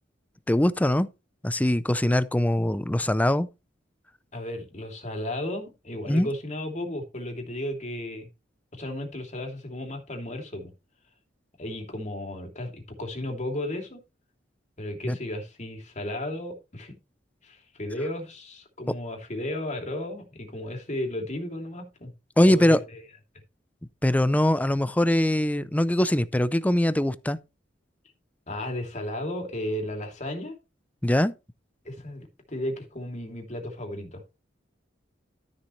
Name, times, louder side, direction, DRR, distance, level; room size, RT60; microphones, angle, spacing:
voice 1, 0.5-1.1 1.4-3.5 6.1-6.3 15.1-15.2 22.4-22.8 24.0-27.4 31.0-31.3, left 1 dB, 10° left, 0.5 m, -22 dB
voice 2, 4.3-8.3 8.7-10.7 11.6-14.0 14.8-16.9 17.4-22.1 22.5-23.0 28.5-30.5 31.8-34.2, left 1 dB, 40° left, 2.9 m, -34 dB
13.0 x 7.0 x 3.2 m
head